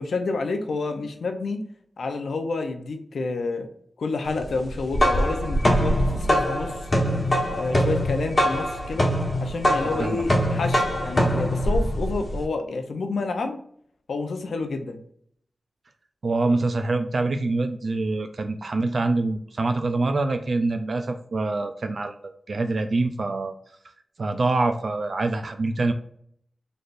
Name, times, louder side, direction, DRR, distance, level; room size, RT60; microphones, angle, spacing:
voice 1, 0.0-1.6 2.0-3.7 4.0-6.9 7.6-9.1 9.4-13.6 14.1-15.0, left 3 dB, 85° left, 6 dB, 0.6 m, -29 dB
sound 1, 4.7-12.4, equal, 35° left, 1.1 m, -23 dB
voice 2, 9.8-10.5 16.2-22.1 22.5-23.5 24.2-25.9, right 3 dB, 60° right, 7 dB, 0.4 m, -25 dB
4.0 x 3.3 x 2.5 m, 0.64 s
cardioid pair, 65°, 0 cm